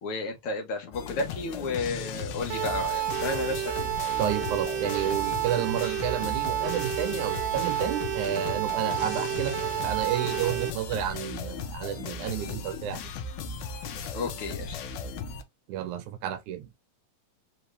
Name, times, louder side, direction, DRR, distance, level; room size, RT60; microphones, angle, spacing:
voice 1, 0.0-3.7 14.1-14.8, left 3 dB, 60° left, 1.6 m, -32 dB
sound 1, 0.9-15.4, left 5 dB, 80° left, 2.1 m, -37 dB
sound 2, 2.5-10.7, right 12 dB, 60° right, 2.0 m, -30 dB
voice 2, 4.2-13.1 15.7-16.7, right 10 dB, 80° right, 2.1 m, -31 dB
5.2 x 2.9 x 3.2 m
omnidirectional pair, 3.5 m